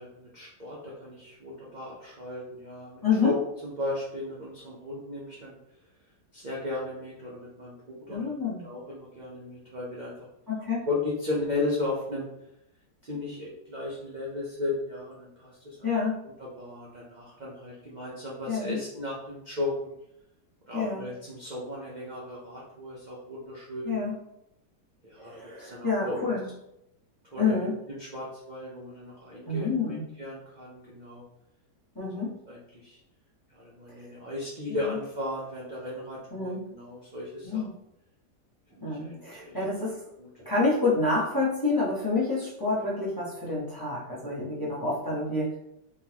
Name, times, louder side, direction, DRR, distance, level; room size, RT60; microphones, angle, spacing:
voice 1, 0.0-3.3 3.6-5.6 6.3-8.3 8.6-10.1 10.9-12.3 13.0-15.9 16.2-19.9 20.7-24.0 25.0-26.3 27.3-31.2 32.0-32.1 32.5-33.0 33.5-37.6 38.8-39.6 40.2-40.5, left 2 dB, 50° right, -4 dB, 0.5 m, -36 dB
voice 2, 3.0-3.3 8.1-8.6 10.5-10.8 15.8-16.2 18.5-18.8 20.7-21.1 23.8-24.1 25.2-26.5 27.4-27.8 29.5-30.0 31.9-32.3 33.9-34.1 34.7-35.0 36.3-36.6 37.4-37.7 38.8-40.0 40.4-45.6, left 3 dB, 15° left, -8 dB, 0.8 m, -28 dB
3.7 x 3.7 x 2.9 m, 0.83 s
omnidirectional pair, 1.8 m